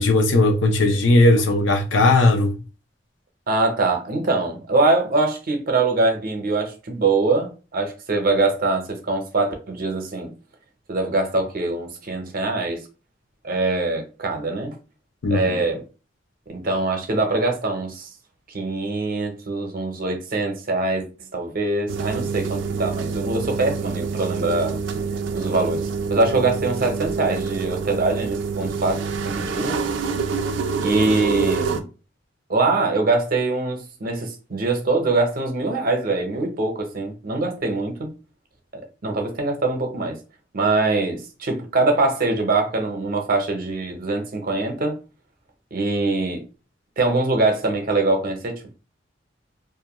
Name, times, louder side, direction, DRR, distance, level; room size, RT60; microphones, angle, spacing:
voice 1, 0.0-2.6 15.2-15.6, left 2 dB, 80° left, 0.5 m, -17 dB
voice 2, 3.5-10.3 10.9-12.8 13.4-14.8 15.3-15.8 16.5-18.1 18.5-21.1 21.3-24.8 25.3-29.8 30.8-31.8 32.5-38.1 38.7-40.2 40.5-44.9 45.7-46.4 47.0-48.7, right 3 dB, 50° right, 0.7 m, -23 dB
sound 1, 21.9-31.8, right 5 dB, 85° right, 0.4 m, -26 dB
2.5 x 2.2 x 2.9 m
head